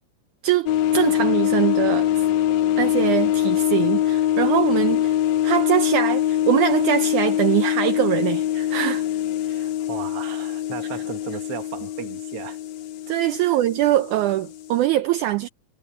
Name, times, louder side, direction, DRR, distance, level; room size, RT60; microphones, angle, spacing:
voice 1, 0.4-2.1 2.8-5.1 5.4-9.1 13.1-15.5, right 13 dB, 80° right, 1.8 m, -22 dB
sound 1, 0.7-14.9, left 11 dB, 65° left, 1.8 m, -23 dB
voice 2, 9.4-12.6 13.4-13.6, right 10 dB, 55° right, 1.8 m, -36 dB
omnidirectional pair, 4.4 m